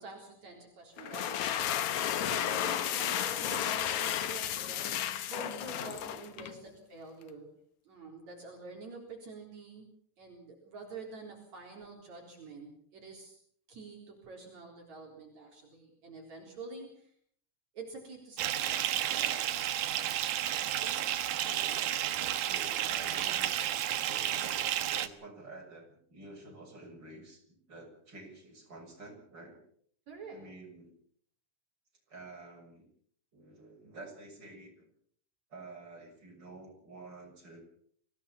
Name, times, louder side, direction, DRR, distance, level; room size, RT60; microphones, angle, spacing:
voice 1, 0.0-7.5 7.8-9.9 10.2-13.4 13.7-17.1 17.7-19.0 20.7-21.2 30.1-30.4, right 3 dB, 65° right, 0 dB, 5.2 m, -47 dB
sound 1, 1.0-6.6, left 10 dB, 70° left, 2.5 m, -33 dB
Bathtub (filling or washing) / Fill (with liquid), 18.4-25.1, right 11 dB, 90° right, 2.7 m, -32 dB
voice 2, 21.4-23.5 24.0-24.7 25.0-29.6 30.3-30.9 32.1-32.9 33.3-34.9 35.5-37.6, right 2 dB, 35° right, 1 dB, 7.5 m, -50 dB
25.5 x 18.0 x 7.1 m, 0.62 s
omnidirectional pair, 3.5 m